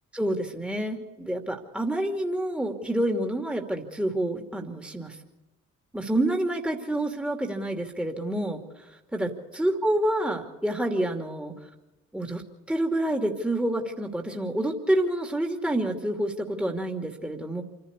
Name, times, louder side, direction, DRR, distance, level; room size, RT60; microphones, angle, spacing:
voice 1, 0.1-5.2 5.9-8.6 9.1-9.3 9.6-11.5 12.1-12.4 12.7-17.6, right 1 dB, 5° right, 3 dB, 2.6 m, -28 dB
27.0 x 11.5 x 8.4 m, 1.0 s
hypercardioid pair, 45°, 36 cm